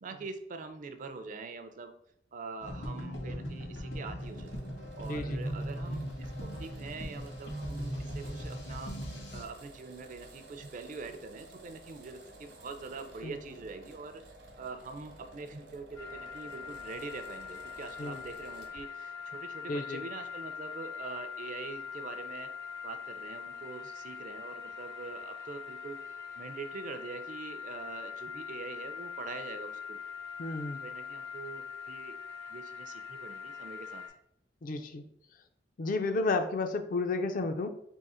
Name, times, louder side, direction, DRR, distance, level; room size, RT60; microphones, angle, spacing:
voice 1, 0.0-1.9 2.3-4.5 5.0-8.9 9.3-14.2 14.6-22.5 22.8-26.0 26.4-30.0 30.8-32.2 32.5-34.0, right 4 dB, 45° right, 8 dB, 0.4 m, -44 dB
sound 1, 2.6-9.4, equal, 60° left, 1.2 m, -38 dB
sound 2, 4.2-18.8, right 1 dB, 75° right, 0.9 m, -53 dB
voice 2, 5.0-5.4 13.2-13.4 18.0-18.2 19.7-20.0 30.4-30.8 34.6-35.0 35.8-37.7, left 3 dB, 45° left, 7 dB, 0.4 m, -32 dB
sound 3, 16.0-34.1, left 6 dB, 85° left, 1.7 m, -43 dB
3.6 x 2.8 x 4.2 m, 0.72 s
head